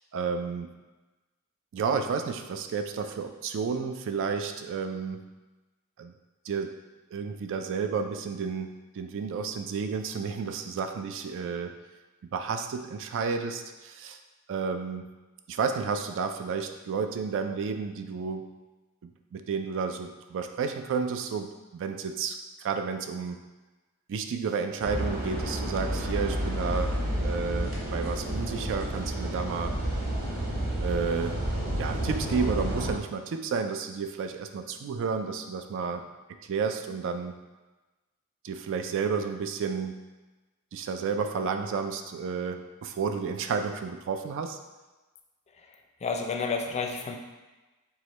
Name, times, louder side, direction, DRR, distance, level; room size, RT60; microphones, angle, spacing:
voice 1, 0.1-0.7 1.7-5.2 6.0-6.1 6.5-6.7 7.1-11.7 12.3-14.2 14.5-15.1 15.5-18.4 19.0-23.4 24.1-26.9 27.2-29.7 30.8-31.4 31.8-36.0 36.4-37.3 38.4-40.0 40.7-44.6, right 5 dB, 60° right, 7 dB, 0.3 m, -31 dB
sound 1, 24.8-32.9, right 1 dB, 45° right, 1.0 m, -30 dB
voice 2, 46.0-47.2, left 4 dB, 30° left, 3 dB, 0.4 m, -30 dB
4.7 x 2.1 x 4.0 m, 1.2 s
head